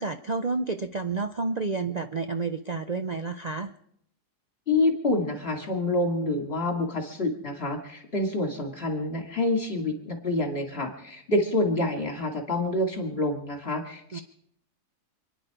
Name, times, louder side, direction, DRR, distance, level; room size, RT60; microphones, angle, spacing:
voice 1, 0.0-3.7 14.1-14.2, right 4 dB, 70° right, 8 dB, 0.4 m, -30 dB
voice 2, 4.7-14.2, left 2 dB, 40° left, 4 dB, 2.8 m, -27 dB
28.0 x 10.5 x 5.0 m, 0.71 s
omnidirectional pair, 1.7 m